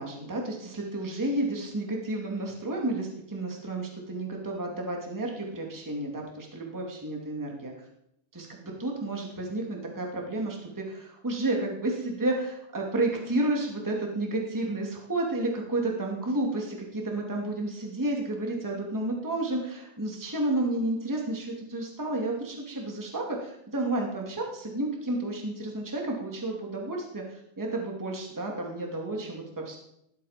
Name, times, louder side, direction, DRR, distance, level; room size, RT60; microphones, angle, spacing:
voice 1, 0.0-7.7 8.3-29.8, right 2 dB, 5° right, 0 dB, 1.6 m, -31 dB
17.5 x 12.0 x 5.3 m, 0.78 s
omnidirectional pair, 5.1 m